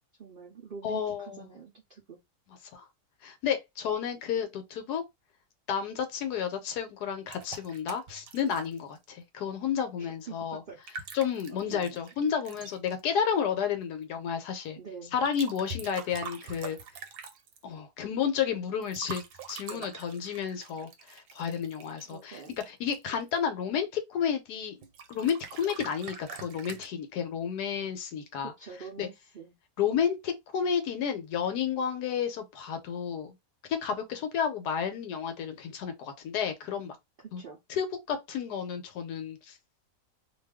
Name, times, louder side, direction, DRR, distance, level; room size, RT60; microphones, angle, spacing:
voice 1, 0.2-2.2 10.0-10.8 11.5-12.3 14.8-15.2 15.6-15.8 19.7-19.9 22.0-22.5 28.4-29.6 37.2-37.6, right 5 dB, 70° right, 0.5 m, -46 dB
voice 2, 0.8-1.5 2.7-2.8 3.2-5.0 5.7-10.6 11.1-14.8 15.1-16.8 17.6-22.4 22.7-24.8 25.1-28.5 29.0-29.1 29.8-33.3 33.7-37.0 37.3-37.4 37.7-39.6, left 7 dB, 75° left, 1.1 m, -31 dB
sound 1, 7.3-9.1 10.7-13.0 15.2-17.6 18.8-23.4 24.8-26.9, right 5 dB, 90° right, 1.3 m, -44 dB
2.6 x 2.3 x 3.3 m
omnidirectional pair, 1.8 m